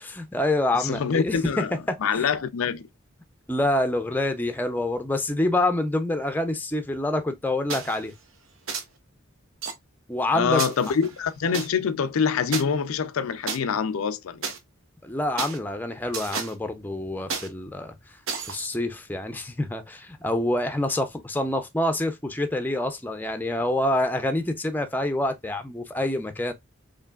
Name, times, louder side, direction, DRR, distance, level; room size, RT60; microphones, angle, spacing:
voice 1, 0.2-2.2 3.5-8.1 10.1-10.6 15.0-17.9 18.4-26.5, left 1 dB, 10° left, 0.5 m, -26 dB
voice 2, 0.8-2.9 10.3-14.5, left 6 dB, 90° left, 0.4 m, -25 dB
sound 1, 7.7-8.0 8.7-8.8 9.6-9.7 10.6-11.7 12.5-12.6 13.5-13.6 14.4-14.6 15.4-15.6 16.1-16.5 17.3-17.5 18.3-18.7, right 6 dB, 80° right, 0.9 m, -31 dB
4.7 x 3.0 x 2.3 m
head